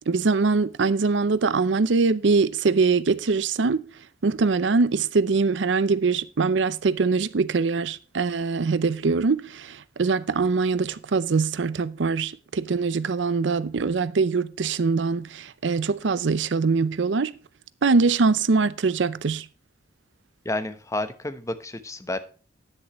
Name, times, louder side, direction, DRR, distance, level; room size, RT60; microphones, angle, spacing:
voice 1, 0.1-3.9 4.2-17.3 17.8-19.5, right 4 dB, 80° right, 0.6 m, -23 dB
voice 2, 20.4-22.2, left 2 dB, 15° left, 0.9 m, -30 dB
10.5 x 10.0 x 3.0 m
head